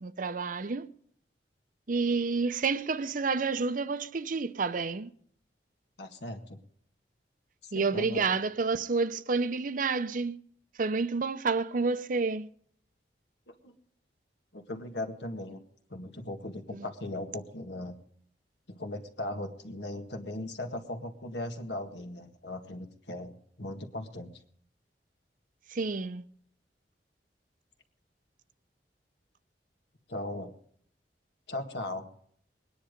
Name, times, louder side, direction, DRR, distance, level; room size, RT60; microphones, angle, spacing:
voice 1, 0.0-0.9 1.9-5.1 7.7-10.4 10.8-12.5 16.7-16.8 25.7-26.2, right 4 dB, 50° right, 0.6 m, -29 dB
voice 2, 6.0-6.6 7.6-8.4 13.5-13.7 14.5-15.6 15.9-17.9 18.7-24.3 30.1-30.5 31.5-32.1, left 1 dB, 75° left, 1.8 m, -38 dB
20.5 x 10.0 x 5.2 m
head